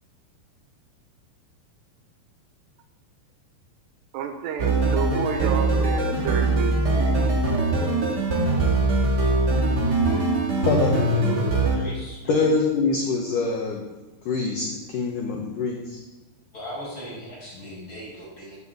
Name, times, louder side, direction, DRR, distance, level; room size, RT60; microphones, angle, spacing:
voice 1, 4.1-7.3, right 7 dB, 80° right, 6 dB, 3.1 m, -31 dB
sound 1, 4.6-11.8, right 2 dB, 50° right, 1.2 m, -22 dB
voice 2, 10.6-11.3 12.3-13.8 14.3-16.0, left 4 dB, 70° left, 1 dB, 2.1 m, -24 dB
voice 3, 11.7-12.4 16.5-18.6, equal, 20° left, -6 dB, 5.6 m, -37 dB
9.6 x 9.1 x 7.7 m, 1.2 s
omnidirectional pair, 5.0 m